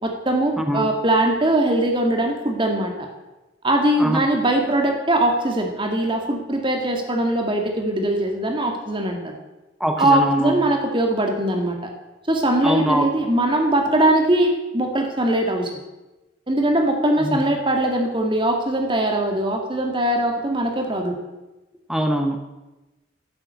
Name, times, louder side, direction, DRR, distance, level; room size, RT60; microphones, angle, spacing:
voice 1, 0.0-2.9 3.6-9.3 10.0-11.8 12.3-15.8 16.5-21.1, right 1 dB, 25° right, 3 dB, 1.9 m, -21 dB
voice 2, 9.8-10.5 12.6-13.1 17.2-17.4 21.9-22.4, equal, ahead, 4 dB, 0.7 m, -22 dB
11.0 x 7.6 x 8.0 m, 1.1 s
head